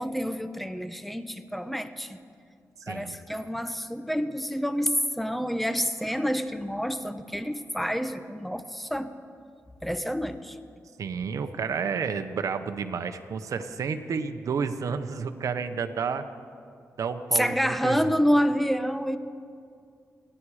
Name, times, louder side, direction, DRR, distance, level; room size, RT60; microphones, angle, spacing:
voice 1, 0.0-2.2 2.9-9.1 9.8-10.6 17.3-19.2, equal, ahead, 10 dB, 1.0 m, -28 dB
voice 2, 2.9-3.2 11.0-16.2 17.0-18.0, right 6 dB, 70° right, 8 dB, 0.9 m, -31 dB
29.5 x 10.0 x 4.9 m, 2.3 s
cardioid pair, 70°, 6 cm